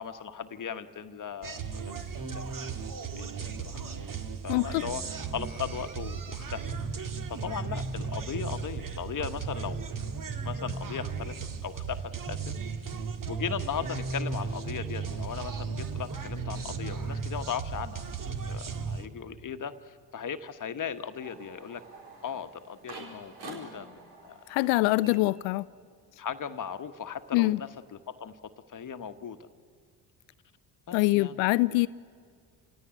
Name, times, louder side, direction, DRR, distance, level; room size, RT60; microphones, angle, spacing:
voice 1, 0.0-1.9 2.3-2.5 3.2-3.8 4.4-5.0 5.3-9.8 10.4-12.5 13.3-18.0 18.5-21.8 22.2-24.5 26.2-29.5 30.9-31.4, left 7 dB, 40° left, 1.2 m, -38 dB
sound 1, 1.4-19.1, right 5 dB, 40° right, 1.8 m, -35 dB
voice 2, 4.5-4.8 24.5-25.6 27.3-27.6 30.9-31.9, left 20 dB, 75° left, 0.5 m, -24 dB
sound 2, 20.8-26.0 26.3-27.8, right 3 dB, 80° right, 4.5 m, -49 dB
27.5 x 17.0 x 9.9 m
hypercardioid pair, 55°, 49 cm